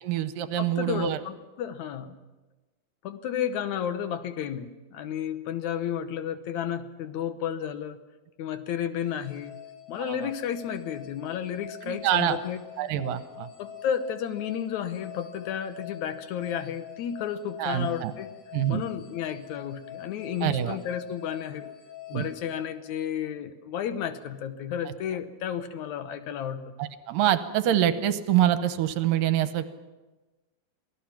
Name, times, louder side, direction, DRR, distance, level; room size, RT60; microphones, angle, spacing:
voice 1, 0.0-1.2 10.0-10.3 11.9-12.4 12.8-13.5 17.6-18.1 18.5-18.8 20.4-20.8 22.1-22.3 24.9-25.0 26.8-29.8, right 11 dB, 75° right, 10 dB, 2.5 m, -26 dB
voice 2, 0.6-2.2 3.0-8.0 8.4-9.6 9.9-12.6 13.6-18.3 18.7-21.7 22.1-26.8, left 9 dB, 65° left, 10 dB, 2.1 m, -32 dB
sound 1, 9.0-23.4, left 11 dB, 25° left, 6.8 m, -45 dB
27.5 x 18.0 x 5.9 m, 1.2 s
omnidirectional pair, 4.1 m